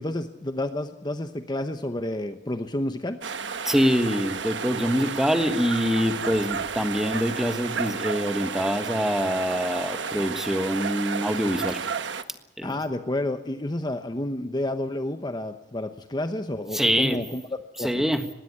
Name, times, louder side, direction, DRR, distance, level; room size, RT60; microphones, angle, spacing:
voice 1, 0.0-3.2 12.6-17.4 17.8-17.9, left 1 dB, 25° left, 8 dB, 1.0 m, -30 dB
sound 1, 3.2-12.2, right 6 dB, 80° right, 1.2 m, -32 dB
voice 2, 3.6-11.8 12.6-12.7 16.7-17.2 17.8-18.2, equal, ahead, 8 dB, 1.5 m, -25 dB
20.5 x 16.5 x 9.7 m, 1.0 s
head